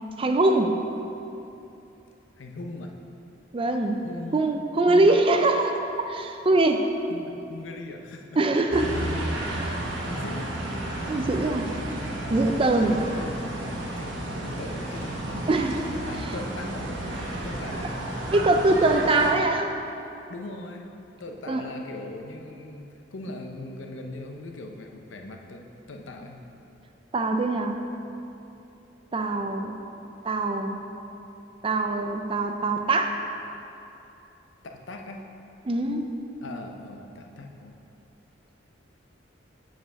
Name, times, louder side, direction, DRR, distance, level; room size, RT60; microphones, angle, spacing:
voice 1, 0.2-0.8 3.5-4.0 4.3-6.9 8.4-9.0 9.5-9.8 11.1-11.7 12.3-13.0 15.5-15.9 18.3-19.7 21.5-21.6 27.1-27.8 29.1-29.7 30.2-30.8 31.6-33.2 35.7-36.1, right 2 dB, 30° right, 5 dB, 0.4 m, -23 dB
voice 2, 2.4-2.9 4.0-4.4 4.9-5.2 7.1-8.4 10.0-10.5 12.8-13.3 14.0-15.2 16.0-17.0 17.4-17.9 20.3-20.8 21.2-26.4 34.6-35.2 36.4-37.8, left 2 dB, 90° left, 3 dB, 0.7 m, -40 dB
sound 1, 8.7-19.3, right 1 dB, 85° right, 1.1 m, -32 dB
8.1 x 5.0 x 4.8 m, 2.8 s
head